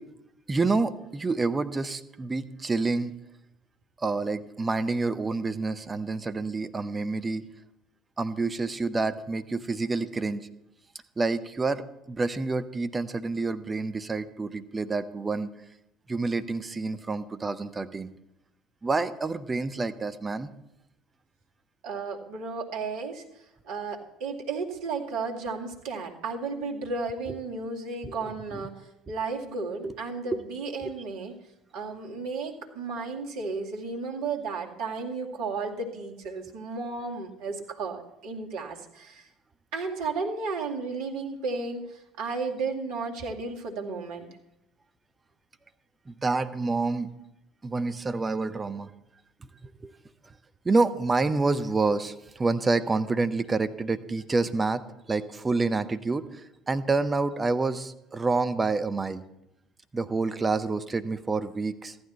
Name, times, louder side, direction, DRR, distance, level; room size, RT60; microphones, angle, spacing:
voice 1, 0.5-3.1 4.0-7.4 8.2-10.5 11.2-15.5 16.1-18.1 18.8-20.5 28.0-28.2 29.8-29.9 46.1-47.1 47.6-48.9 49.8-49.9 50.6-54.8 55.1-56.2 56.7-59.2 59.9-61.9, right 3 dB, 20° right, 11 dB, 0.9 m, -28 dB
voice 2, 21.8-23.2 23.7-28.7 29.1-31.3 31.7-39.2 39.7-41.8 42.2-44.3, right 4 dB, 60° right, 1 dB, 2.1 m, -33 dB
14.5 x 11.5 x 4.4 m, 0.87 s
figure-of-eight pair, 60°, 0 cm